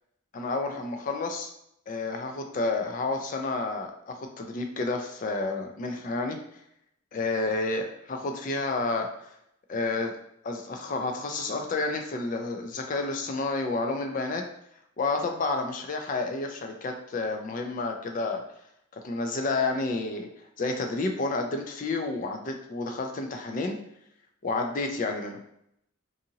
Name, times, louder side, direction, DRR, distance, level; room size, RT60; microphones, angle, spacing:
voice 1, 0.3-1.5 1.9-6.4 7.1-9.3 9.7-10.2 10.4-14.4 15.0-18.4 18.9-20.3 20.6-23.8 24.4-25.4, left 3 dB, 40° left, 4 dB, 0.3 m, -30 dB
2.7 x 2.5 x 2.7 m, 0.75 s
head